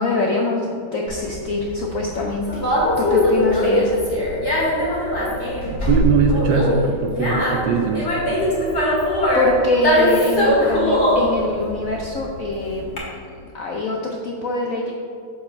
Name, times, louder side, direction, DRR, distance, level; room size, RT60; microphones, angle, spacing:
voice 1, 0.0-2.6 3.0-3.9 9.3-12.8 13.4-14.9, left 2 dB, 70° left, 0 dB, 0.8 m, -23 dB
Conversation, 1.1-13.0, equal, 35° left, 2.0 m, -21 dB
voice 2, 5.9-8.1, right 5 dB, 75° right, 4 dB, 1.0 m, -20 dB
7.0 x 5.5 x 5.3 m, 2.5 s
omnidirectional pair, 2.2 m